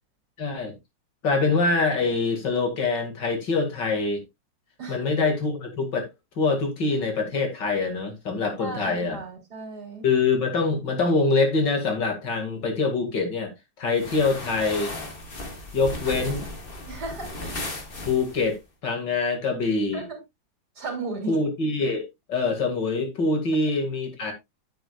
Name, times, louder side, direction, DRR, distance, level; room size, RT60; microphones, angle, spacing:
voice 1, 0.4-0.7 1.2-4.2 4.9-6.1 6.4-9.2 10.0-13.5 13.8-14.9 15.7-16.5 18.0-20.0 21.3-22.0 22.3-24.3, left 3 dB, 65° left, 2.8 m, -24 dB
voice 2, 8.6-10.1 16.9-17.4 19.9-20.2 20.8-21.4, right 3 dB, 55° right, 3.7 m, -35 dB
sound 1, 13.9-18.6, left 2 dB, 30° left, 1.8 m, -36 dB
9.6 x 8.8 x 2.3 m
omnidirectional pair, 2.0 m